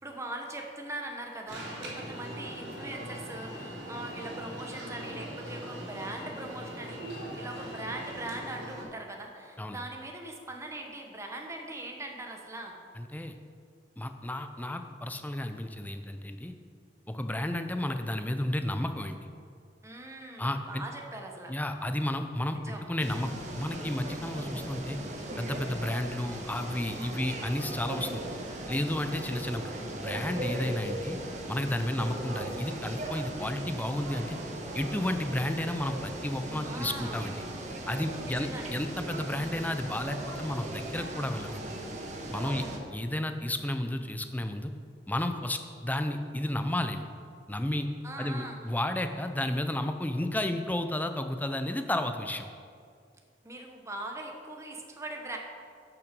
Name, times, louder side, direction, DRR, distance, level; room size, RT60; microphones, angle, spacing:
voice 1, 0.0-12.8 19.8-21.5 22.5-22.8 36.6-37.2 38.2-38.7 42.4-42.8 48.0-48.6 53.4-55.4, right 2 dB, 15° right, 1 dB, 1.1 m, -41 dB
Alarm, 1.5-8.8, right 1 dB, 70° right, 2.7 m, -41 dB
voice 2, 13.0-13.3 14.0-16.5 17.1-19.2 20.4-20.8 21.5-22.6 22.9-25.0 25.4-28.2 28.7-29.7 30.0-31.2 31.5-34.4 34.7-37.4 37.9-41.6 42.3-42.6 42.9-44.7 45.1-47.1 47.5-47.9 48.2-52.5, left 1 dB, 10° left, 7 dB, 0.6 m, -32 dB
sound 1, 23.0-42.8, right 1 dB, 45° right, 1.3 m, -38 dB
12.5 x 5.9 x 5.3 m, 2.2 s
head